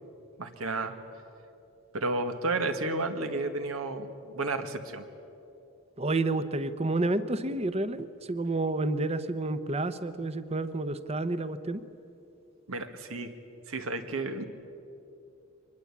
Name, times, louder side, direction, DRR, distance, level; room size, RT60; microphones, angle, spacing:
voice 1, 0.4-1.0 1.9-5.0 12.7-13.3 13.7-14.4, right 2 dB, 85° right, 7 dB, 1.8 m, -32 dB
voice 2, 6.0-11.8, right 2 dB, 30° right, 13 dB, 0.9 m, -30 dB
24.0 x 20.5 x 8.6 m, 2.8 s
head